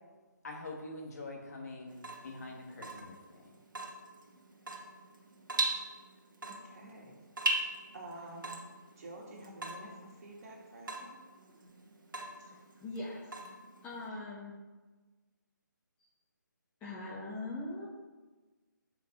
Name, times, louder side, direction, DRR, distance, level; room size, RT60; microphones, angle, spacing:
voice 1, 0.4-2.0 2.2-3.4, left 2 dB, 50° left, 0 dB, 1.9 m, -44 dB
Water tap faucet / Drip, 1.9-14.1, right 2 dB, 80° right, 1.3 m, -40 dB
voice 2, 6.4-7.2 7.9-8.6 9.0-11.2, right 1 dB, 45° right, -1 dB, 2.0 m, -49 dB
voice 3, 12.4-13.3 13.8-14.6 16.8-17.9, left 2 dB, 10° left, -6 dB, 0.9 m, -41 dB
5.6 x 5.2 x 6.1 m, 1.3 s
figure-of-eight pair, 155°, 11 cm